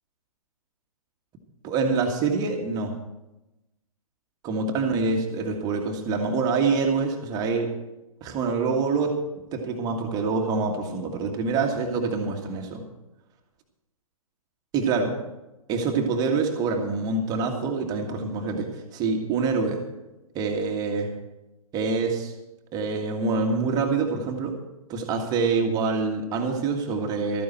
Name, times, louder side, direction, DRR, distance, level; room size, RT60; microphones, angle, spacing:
voice 1, 1.6-3.0 4.4-7.7 8.2-9.1 9.5-12.8 14.7-15.2 15.7-19.8 20.4-21.1 21.7-22.3 22.7-24.6 24.9-27.4, right 4 dB, 20° right, 3 dB, 1.8 m, -26 dB
15.0 x 13.5 x 4.3 m, 0.98 s
figure-of-eight pair, 125°, 19 cm